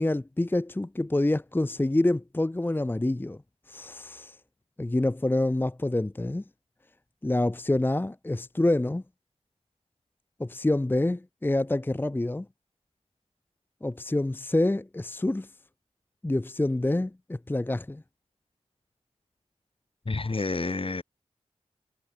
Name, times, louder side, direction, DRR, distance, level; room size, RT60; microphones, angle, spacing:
voice 1, 0.0-3.4 3.7-4.4 4.8-6.4 7.2-9.0 10.4-12.5 13.8-15.5 16.2-18.0, left 1 dB, 15° left, 0.6 m, -27 dB
voice 2, 20.1-21.0, left 3 dB, 50° left, 3.6 m, -29 dB
cardioid pair, 50°, 12 cm